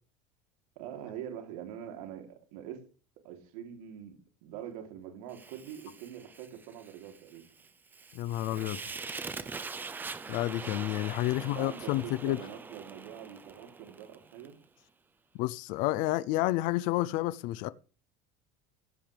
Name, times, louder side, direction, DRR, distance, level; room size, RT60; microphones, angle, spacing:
voice 1, 0.7-2.8 3.2-7.5 11.3-14.6, right 9 dB, 85° right, 3.3 m, -44 dB
Fire, 5.3-14.5, right 4 dB, 10° right, 0.6 m, -43 dB
voice 2, 8.1-8.8 10.3-12.4 15.3-17.7, left 17 dB, 50° left, 0.6 m, -30 dB
16.0 x 15.0 x 3.5 m
cardioid pair, 170°, 18 cm